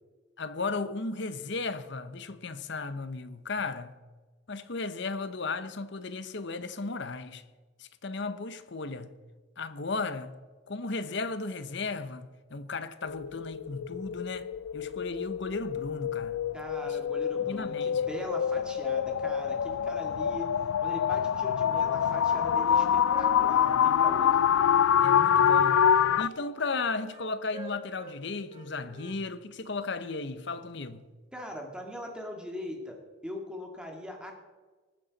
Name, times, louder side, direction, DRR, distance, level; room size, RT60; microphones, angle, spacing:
voice 1, 0.4-4.0 4.5-7.4 7.8-9.2 9.6-10.4 10.7-16.4 16.8-17.0 17.5-18.1 25.0-31.1, left 3 dB, 60° left, 0.9 m, -35 dB
sound 1, 13.0-26.3, left 8 dB, 90° left, 0.4 m, -26 dB
voice 2, 16.5-20.5 20.8-24.4 31.3-34.3, left 1 dB, 5° right, 1.9 m, -40 dB
Wind instrument woodwind instrument, 21.8-24.8 25.0-25.3 25.6-28.2 28.5-29.2, right 3 dB, 30° right, 2.3 m, -46 dB
20.0 x 9.9 x 4.1 m
head